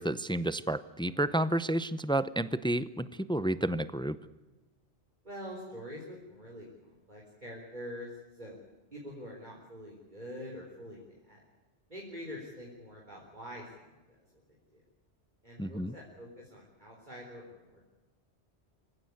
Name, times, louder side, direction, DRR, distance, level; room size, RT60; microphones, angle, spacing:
voice 1, 0.0-4.2 15.6-15.9, right 1 dB, 5° left, 15 dB, 0.6 m, -31 dB
voice 2, 5.2-8.1 8.4-8.6 8.9-11.4 11.9-13.8 14.1-14.4 14.7-14.8 15.4-17.8, equal, 40° right, -2 dB, 4.3 m, -45 dB
25.5 x 16.0 x 9.7 m, 1.1 s
omnidirectional pair, 1.2 m